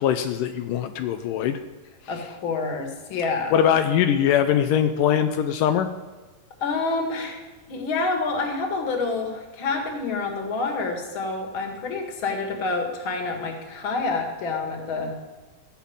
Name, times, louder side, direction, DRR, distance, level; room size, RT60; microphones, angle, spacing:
voice 1, 0.0-1.6 3.5-5.9, left 9 dB, 85° left, 8 dB, 2.2 m, -21 dB
voice 2, 2.1-3.5 6.6-7.4 7.7-15.1, left 3 dB, 45° left, 3 dB, 2.2 m, -28 dB
14.0 x 5.9 x 8.8 m, 1.3 s
omnidirectional pair, 3.8 m